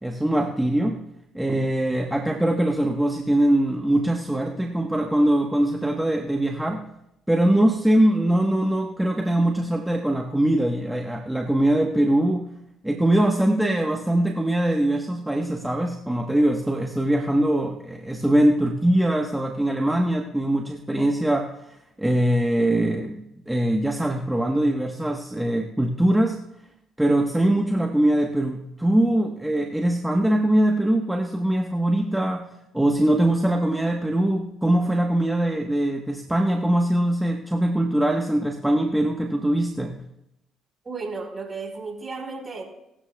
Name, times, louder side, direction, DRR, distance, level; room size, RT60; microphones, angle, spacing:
voice 1, 0.0-1.0 1.3-6.9 7.3-12.5 12.8-21.5 22.0-26.4 27.0-32.5 32.7-40.0, right 1 dB, 5° right, 2 dB, 1.2 m, -22 dB
voice 2, 40.8-42.6, right 4 dB, 30° right, 3 dB, 4.4 m, -33 dB
21.5 x 12.5 x 2.3 m, 0.84 s
hypercardioid pair, 55°, 0 cm